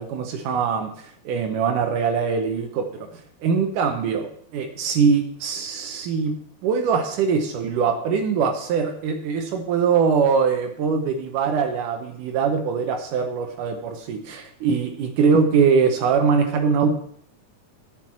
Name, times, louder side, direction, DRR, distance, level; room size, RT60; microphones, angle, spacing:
voice 1, 0.0-2.9 3.4-6.4 6.6-16.9, right 5 dB, 80° right, 4 dB, 2.4 m, -22 dB
9.2 x 6.0 x 7.3 m, 0.64 s
omnidirectional pair, 3.7 m